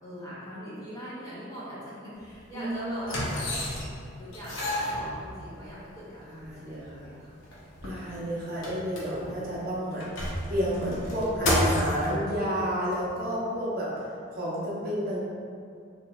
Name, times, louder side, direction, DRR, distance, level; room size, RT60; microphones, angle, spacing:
voice 1, 0.0-3.6 4.2-7.3, equal, 15° left, -9 dB, 0.6 m, -41 dB
sound 1, 2.2-2.3 3.0-4.0 4.3-5.7 6.4-6.5 6.8-6.9 7.3-9.5 9.9-12.1 12.9-13.0, left 1 dB, 70° left, 0.6 m, -30 dB
voice 2, 2.5-3.2 6.3-7.0 7.8-15.2, equal, 45° right, -7 dB, 0.7 m, -31 dB
3.0 x 2.9 x 2.2 m, 2.4 s
head